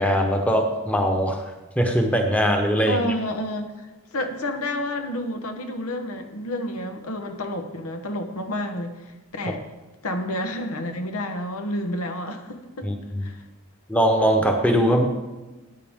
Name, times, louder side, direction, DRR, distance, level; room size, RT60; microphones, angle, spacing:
voice 1, 0.0-1.5 1.8-3.0 12.8-13.3 13.9-15.1, equal, 5° left, 3 dB, 1.0 m, -21 dB
voice 2, 2.9-9.6 10.0-12.9 13.2-13.4, left 1 dB, 90° left, 6 dB, 1.1 m, -30 dB
14.0 x 9.6 x 3.7 m, 1.1 s
head